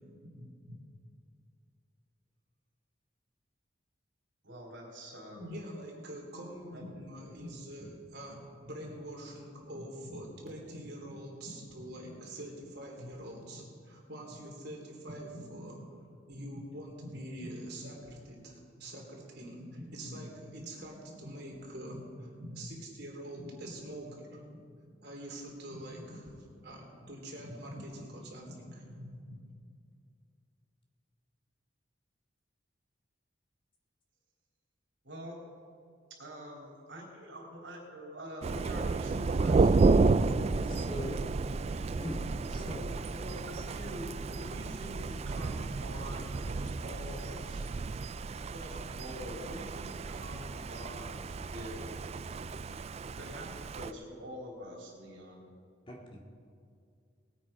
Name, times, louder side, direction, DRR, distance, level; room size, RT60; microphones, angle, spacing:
voice 1, 0.2-0.8 4.4-5.6 6.7-7.9 8.4-8.5 8.8-8.9 9.2-10.3 10.7-11.2 11.4-12.2 13.0-13.8 14.2-14.4 15.1-16.0 16.3-16.6 17.0-17.2 17.8-18.2 18.8-19.0 19.6-20.3 20.6-21.3 21.6-22.1 22.4-22.7 23.4-23.7 24.5-25.0 25.7-26.7 27.3-29.4 35.0-35.5 36.2-39.7 42.5-47.7 48.5-52.1 53.1-55.5, equal, 75° right, -2 dB, 3.5 m, -46 dB
voice 2, 5.3-15.8 16.3-19.6 19.9-22.0 22.6-24.4 25.0-26.3 26.6-28.7, right 1 dB, 60° right, -1 dB, 3.3 m, -45 dB
Thunder, 38.4-53.9, right 3 dB, 35° right, 0.3 m, -31 dB
voice 3, 40.5-41.2 42.0-42.8 55.9-56.3, equal, 30° left, -1 dB, 2.1 m, -41 dB
19.5 x 8.8 x 5.2 m, 2.3 s
head